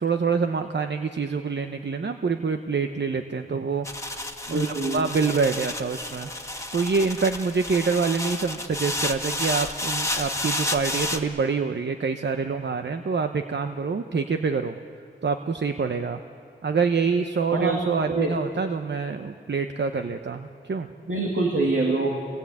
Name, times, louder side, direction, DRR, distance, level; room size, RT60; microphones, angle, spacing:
voice 1, 0.0-4.2 4.5-6.3 6.7-14.8 15.2-16.2 16.6-20.9, right 5 dB, 60° right, 7 dB, 0.9 m, -26 dB
sound 1, 3.8-11.2, left 1 dB, 15° left, 1.6 m, -31 dB
voice 2, 4.5-5.1 17.5-17.7 18.1-18.3 21.1-22.2, right 2 dB, 90° right, -1 dB, 2.5 m, -24 dB
27.0 x 19.5 x 8.6 m, 2.5 s
wide cardioid pair, 85°, 21 cm